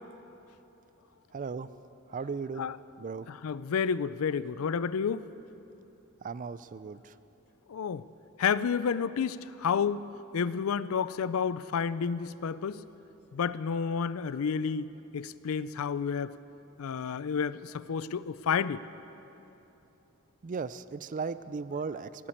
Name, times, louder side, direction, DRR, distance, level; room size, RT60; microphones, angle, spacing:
voice 1, 1.3-1.7 2.1-2.7 3.0-3.3 6.2-7.2 20.4-22.3, right 5 dB, 40° right, 15 dB, 0.4 m, -36 dB
voice 2, 3.3-5.2 7.7-8.0 8.4-10.1 10.3-12.8 13.3-16.3 16.8-18.8, left 6 dB, 90° left, 16 dB, 0.4 m, -30 dB
16.0 x 8.9 x 8.5 m, 3.0 s
head